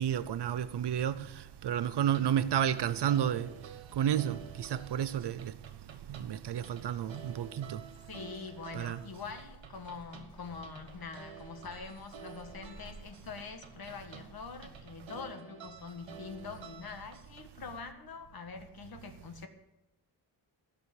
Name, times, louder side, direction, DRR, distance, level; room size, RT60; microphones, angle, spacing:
voice 1, 0.0-3.5 4.0-5.5 6.1-7.8 8.7-9.0, right 10 dB, 65° right, 0.7 m, -31 dB
sound 1, 2.1-17.4, right 6 dB, 80° right, 1.8 m, -51 dB
voice 2, 8.1-19.5, left 5 dB, 50° left, 1.7 m, -44 dB
Walk footsteps, 9.3-14.8, right 1 dB, 10° left, 5.7 m, -56 dB
15.5 x 6.2 x 9.7 m
wide cardioid pair, 175°, 45 cm